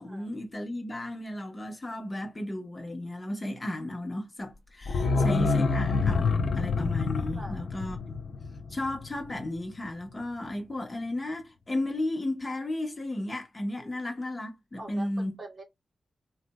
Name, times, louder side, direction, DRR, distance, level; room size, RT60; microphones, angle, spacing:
voice 1, 0.0-8.2 8.7-15.4, left 1 dB, 25° left, 1.0 m, -34 dB
sound 1, 4.8-9.6 9.9-10.0, left 4 dB, 70° left, 0.5 m, -27 dB
voice 2, 5.0-5.4 7.4-7.6 13.8-13.9 14.8-15.1 15.4-15.6, right 1 dB, 40° right, 1.2 m, -43 dB
3.9 x 2.5 x 2.2 m
wide cardioid pair, 110°, 0 cm